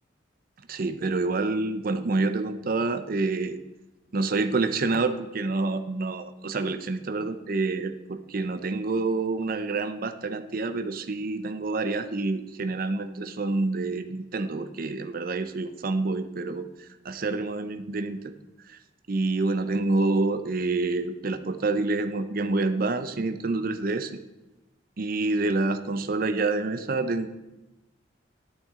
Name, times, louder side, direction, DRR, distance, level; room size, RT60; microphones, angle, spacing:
voice 1, 0.7-3.6 4.1-18.3 18.7-18.8 19.1-24.2 25.0-27.3, right 3 dB, 50° right, 9 dB, 0.6 m, -27 dB
10.5 x 8.6 x 3.7 m, 1.0 s
head